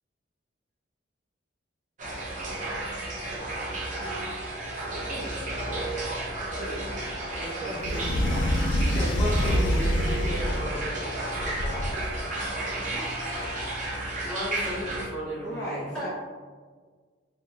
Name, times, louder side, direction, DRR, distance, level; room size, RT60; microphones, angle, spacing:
sound 1, 2.0-15.1, right 2 dB, 40° right, 0.6 m, -32 dB
voice 1, 5.0-5.7 7.6-8.4 9.9-11.2 11.4-12.1 15.4-16.1, equal, 55° left, -10 dB, 0.9 m, -38 dB
voice 2, 6.5-6.9 7.3-7.5 8.2-8.5 9.7-9.8 11.7-11.8 12.8-13.4 15.9-16.1, equal, 5° left, -14 dB, 1.4 m, -43 dB
voice 3, 7.3-8.3 8.8-10.0 12.8-13.6 14.1-15.9, left 1 dB, 30° left, -11 dB, 1.4 m, -36 dB
sound 2, 7.8-10.8 11.4-12.3, left 1 dB, 80° left, 0.3 m, -26 dB
2.9 x 2.8 x 2.2 m, 1.5 s
head